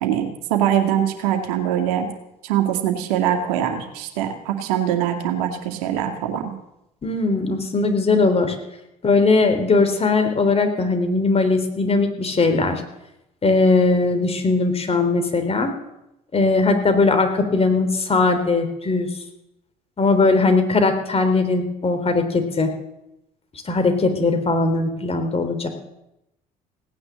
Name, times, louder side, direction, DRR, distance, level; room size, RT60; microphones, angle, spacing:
voice 1, 0.0-2.1 2.4-6.5, right 10 dB, 75° right, 4 dB, 2.2 m, -23 dB
voice 2, 7.0-8.6 9.0-12.8 13.4-15.7 16.3-19.1 20.0-22.7 23.7-25.7, left 3 dB, 30° left, 7 dB, 3.5 m, -19 dB
17.5 x 9.8 x 7.5 m, 0.88 s
hypercardioid pair, 60°, 19 cm